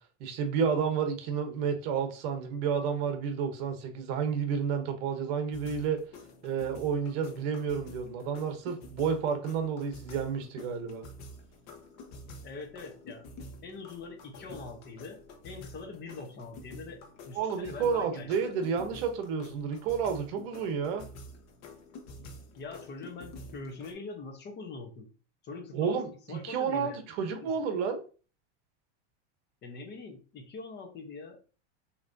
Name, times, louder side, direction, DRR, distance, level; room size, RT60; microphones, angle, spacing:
voice 1, 0.2-6.0 6.4-11.1 17.3-21.0 25.7-28.0, right 6 dB, 55° right, 1.1 m, -31 dB
sound 1, 5.5-23.9, left 2 dB, 50° left, 1.2 m, -49 dB
voice 2, 12.4-13.3 13.6-15.2 15.4-17.0 17.2-18.6 22.3-25.1 25.4-27.0 27.4-27.5 29.6-31.4, left 3 dB, 30° left, 1.0 m, -43 dB
6.3 x 3.0 x 2.7 m
supercardioid pair, 145°, 35 cm